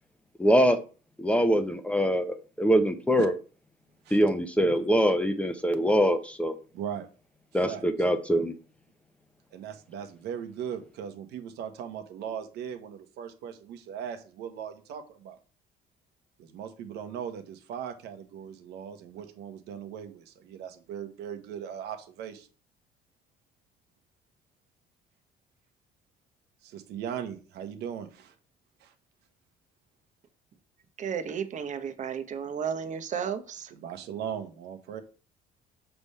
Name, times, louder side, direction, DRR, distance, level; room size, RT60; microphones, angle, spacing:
voice 1, 0.4-0.8 1.2-3.3 4.1-6.6 7.5-8.5, equal, 5° left, 0.7 m, -23 dB
voice 2, 6.7-7.1 7.7-7.9 9.5-15.4 16.4-22.5 26.6-28.3 28.8-28.9 33.8-35.0, right 8 dB, 85° right, 1.0 m, -38 dB
voice 3, 31.0-33.7, right 7 dB, 45° right, 0.9 m, -33 dB
6.0 x 3.4 x 5.5 m
cardioid pair, 110°, 17 cm